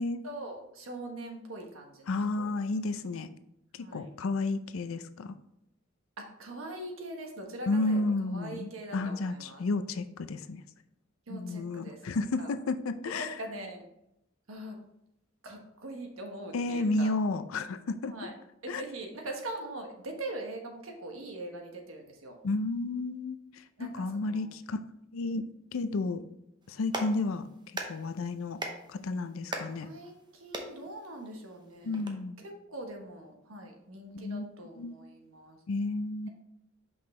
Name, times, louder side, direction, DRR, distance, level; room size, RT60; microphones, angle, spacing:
voice 1, 0.2-2.5 3.8-4.1 6.2-9.6 11.3-12.5 13.1-13.8 14.5-14.8 15.4-17.2 18.1-18.3 18.6-22.4 23.8-24.5 29.8-32.0 32.4-35.6, right 1 dB, 85° right, 2 dB, 1.3 m, -42 dB
voice 2, 2.1-3.3 3.8-5.3 7.7-10.6 11.3-13.3 16.5-18.2 18.7-18.8 22.4-23.4 23.8-24.8 25.1-26.2 26.7-27.5 27.9-28.6 28.9-29.9 31.8-32.4 34.1-34.5 34.8-35.0 35.7-36.3, left 2 dB, 85° left, 11 dB, 0.5 m, -32 dB
Clapping, 26.6-32.1, right 2 dB, 20° right, 0.8 m, -42 dB
6.0 x 5.4 x 3.3 m, 0.81 s
head